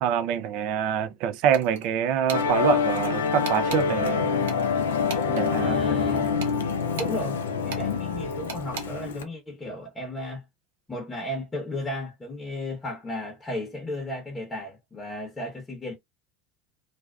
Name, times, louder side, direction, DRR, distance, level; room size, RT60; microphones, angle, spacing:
voice 1, 0.0-4.3 5.3-5.7, right 8 dB, 60° right, 0.4 m, -25 dB
sound 1, 1.5-1.9 2.3-2.5 3.4-3.8 4.5-5.5 6.4-7.2 7.7-7.9 8.5-8.9, right 5 dB, 75° right, 0.8 m, -37 dB
Musical instrument, 2.3-9.2, left 5 dB, 85° left, 0.5 m, -26 dB
voice 2, 5.6-6.3 6.9-10.4 10.9-15.9, left 1 dB, 20° left, 0.9 m, -34 dB
2.4 x 2.2 x 2.3 m
hypercardioid pair, 85°, 0 cm